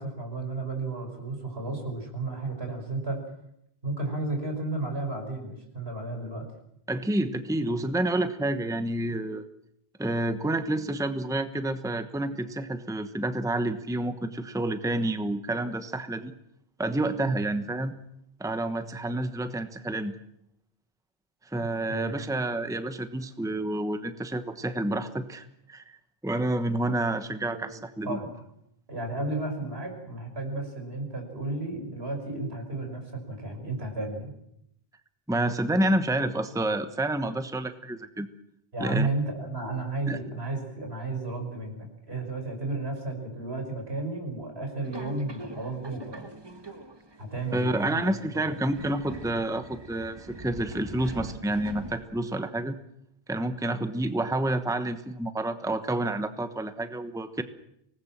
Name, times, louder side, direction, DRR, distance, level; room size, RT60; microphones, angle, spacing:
voice 1, 0.0-3.2 3.8-6.5 17.2-17.3 21.6-22.1 27.5-27.7 28.0-28.3 28.9-34.3 38.7-46.3 47.2-48.6, right 2 dB, 80° right, 3 dB, 6.0 m, -33 dB
voice 2, 6.9-9.4 10.0-16.3 16.8-17.9 18.4-20.1 21.5-26.0 26.2-28.2 35.3-38.3 38.8-39.1 40.1-40.2 47.5-52.7 53.3-57.4, right 1 dB, 5° right, 9 dB, 1.1 m, -29 dB
Subway metro underground, 44.8-52.4, right 2 dB, 25° right, 1.5 m, -43 dB
25.0 x 19.5 x 7.5 m, 0.78 s
omnidirectional pair, 1.0 m